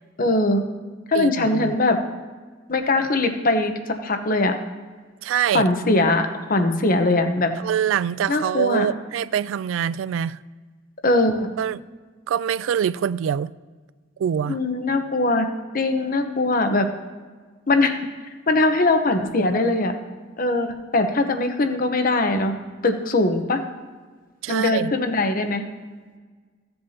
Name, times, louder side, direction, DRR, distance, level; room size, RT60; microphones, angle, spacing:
voice 1, 0.2-0.6 1.1-2.0 2.7-3.7 4.0-4.5 5.5-7.5 8.3-8.9 11.0-11.5 14.5-15.5 15.7-16.9 17.7-18.0 18.5-19.9 20.4-22.5 22.8-23.6 24.5-25.6, left 2 dB, 45° left, 0.9 m, -21 dB
voice 2, 1.1-1.8 5.2-5.7 7.6-10.4 11.6-11.8 12.3-13.5 14.2-14.6 24.4-24.9, right 8 dB, 75° right, 0.3 m, -24 dB
15.5 x 7.8 x 2.8 m
head